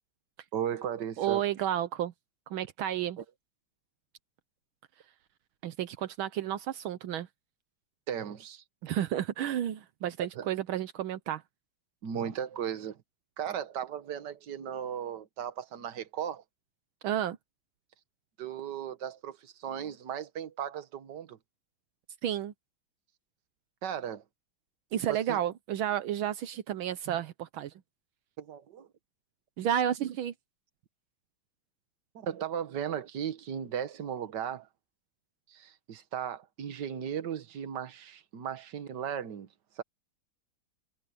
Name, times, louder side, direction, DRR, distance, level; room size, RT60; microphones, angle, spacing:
voice 1, 0.5-1.4 3.2-3.3 8.1-8.6 10.4-10.5 12.0-13.0 13.4-16.4 18.4-21.4 23.8-24.2 25.1-25.4 27.1-27.2 28.4-28.9 32.2-34.7 35.5-39.5 39.8-39.9, right 9 dB, 60° right, 1.8 m, -36 dB
voice 2, 1.2-2.1 2.5-3.2 5.6-7.3 8.8-11.4 17.0-17.4 22.2-22.5 24.9-27.7 29.6-30.3, right 11 dB, 80° right, 1.6 m, -31 dB
omnidirectional pair, 2.2 m